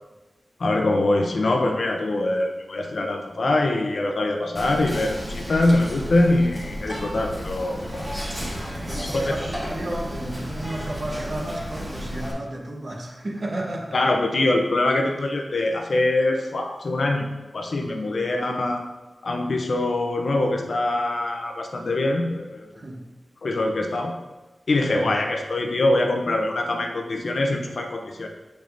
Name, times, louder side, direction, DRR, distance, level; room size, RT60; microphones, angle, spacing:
voice 1, 0.6-8.1 9.1-9.3 13.9-17.3 17.5-18.8 19.2-22.8 23.4-24.1 24.7-28.3, left 2 dB, 70° left, 2 dB, 0.7 m, -23 dB
Whispering, 4.6-12.3, equal, 15° right, 1.6 m, -33 dB
voice 2, 8.9-14.0 18.1-18.2 22.7-23.1 24.9-25.1, right 1 dB, 50° right, -1 dB, 1.1 m, -32 dB
7.4 x 5.3 x 2.6 m, 1.1 s
wide cardioid pair, 110°, 0 cm